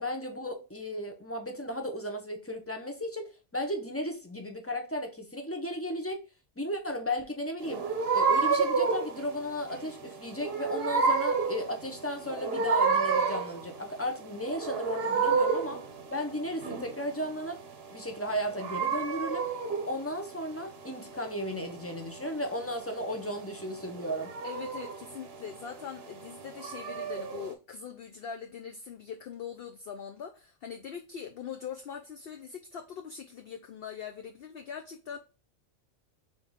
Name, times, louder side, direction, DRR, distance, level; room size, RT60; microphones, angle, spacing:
voice 1, 0.0-6.2 6.6-15.8 16.1-17.6 17.9-19.5 19.9-24.3, equal, 20° left, 0.4 m, -35 dB
sound 1, 7.6-27.5, right 5 dB, 55° right, 0.9 m, -31 dB
voice 2, 24.4-35.2, left 7 dB, 60° left, 0.6 m, -42 dB
4.1 x 3.6 x 3.6 m
omnidirectional pair, 1.4 m